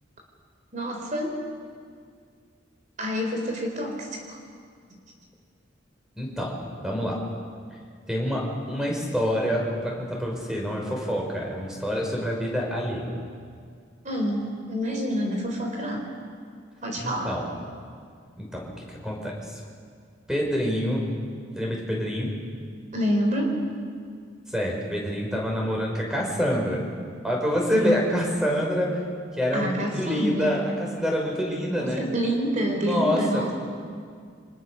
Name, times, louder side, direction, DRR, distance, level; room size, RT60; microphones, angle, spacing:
voice 1, 0.7-1.4 3.0-4.4 14.0-16.1 16.8-17.4 22.9-23.5 27.7-28.0 29.5-30.6 31.7-33.5, equal, 40° right, 2 dB, 3.8 m, -27 dB
voice 2, 6.1-6.6 6.8-7.2 8.1-13.2 17.0-17.5 18.4-19.6 20.3-21.1 21.5-22.3 24.5-26.8 27.2-29.0 29.3-32.1 32.8-33.5, equal, 5° right, -1 dB, 5.7 m, -27 dB
29.5 x 26.5 x 6.6 m, 2.1 s
head